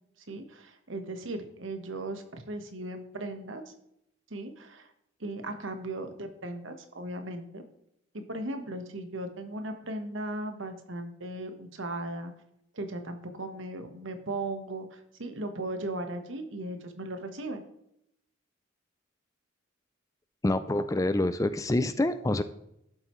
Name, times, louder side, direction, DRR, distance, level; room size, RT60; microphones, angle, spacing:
voice 1, 0.3-3.6 4.3-4.9 5.2-7.6 8.1-12.3 12.7-17.6, right 2 dB, 70° right, 6 dB, 1.3 m, -37 dB
voice 2, 20.4-22.4, left 1 dB, 15° left, 11 dB, 0.4 m, -26 dB
11.5 x 7.8 x 3.1 m, 0.78 s
head